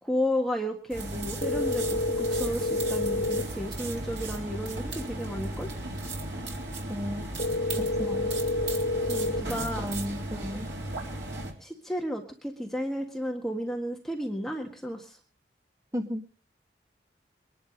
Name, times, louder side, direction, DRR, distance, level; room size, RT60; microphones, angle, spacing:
voice 1, 0.0-5.7 9.1-9.9 11.6-15.2, equal, ahead, 1 dB, 1.7 m, -33 dB
sound 1, 0.9-11.5, right 2 dB, 80° right, 4.0 m, -35 dB
sound 2, 1.4-3.4 7.4-9.4, left 2 dB, 65° left, 2.8 m, -28 dB
voice 2, 6.9-7.3 7.8-8.3 9.8-10.7 15.9-16.2, equal, 15° right, 4 dB, 1.9 m, -34 dB
22.5 x 11.0 x 5.3 m, 0.39 s
head